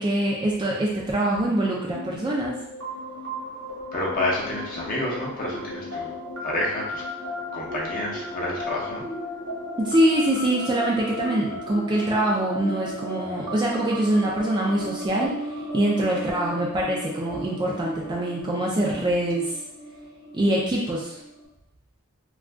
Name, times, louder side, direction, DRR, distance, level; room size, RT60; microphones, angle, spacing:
voice 1, 0.0-2.6 9.8-15.3 15.7-19.5 20.3-21.2, right 1 dB, 20° right, -4 dB, 0.4 m, -24 dB
sound 1, 1.9-21.4, left 1 dB, 60° right, 1.0 m, -36 dB
voice 2, 3.9-6.1 6.4-7.0 7.5-9.0, left 1 dB, 40° left, -4 dB, 0.7 m, -29 dB
2.4 x 2.3 x 3.4 m, 0.80 s
head